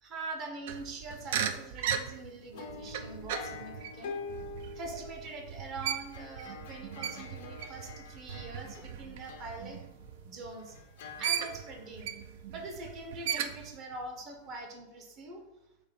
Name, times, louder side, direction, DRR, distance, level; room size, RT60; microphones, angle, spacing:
voice 1, 0.0-4.2 4.7-9.8 10.2-10.8 11.2-12.1 12.5-15.4, right 2 dB, 35° right, 2 dB, 0.8 m, -43 dB
sound 1, 0.7-10.7 11.2-13.8, right 9 dB, 50° right, 0.3 m, -37 dB
sound 2, 2.4-14.7, right 2 dB, 85° right, 0.9 m, -62 dB
sound 3, 2.5-10.3 10.6-12.5, left 4 dB, 55° left, 0.5 m, -46 dB
3.2 x 2.8 x 4.1 m, 0.88 s
figure-of-eight pair, 90°, 0 cm